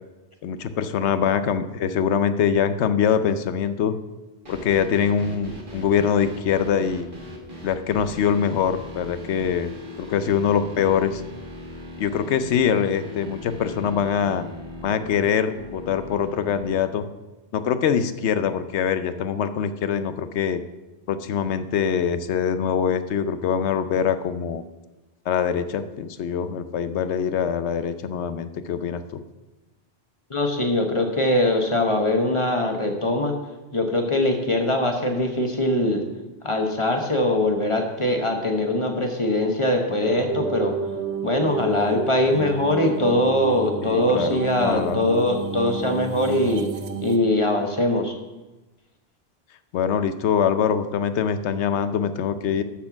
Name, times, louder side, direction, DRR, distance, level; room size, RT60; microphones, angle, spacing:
voice 1, 0.4-4.0 4.5-7.1 7.6-9.7 10.0-11.2 12.0-14.4 14.8-17.1 17.5-20.6 21.1-24.6 25.3-29.2 43.8-45.0 49.7-52.6, left 7 dB, 85° left, 11 dB, 0.9 m, -23 dB
sound 1, 4.4-16.7, left 1 dB, 50° right, 1.8 m, -39 dB
voice 2, 30.3-33.3 33.7-36.0 36.4-40.7 41.2-46.7 47.0-48.1, left 1 dB, 30° left, 3 dB, 1.0 m, -22 dB
sound 2, 40.0-47.2, right 6 dB, 75° right, 1.0 m, -31 dB
13.0 x 4.4 x 5.8 m, 1.1 s
omnidirectional pair, 1.1 m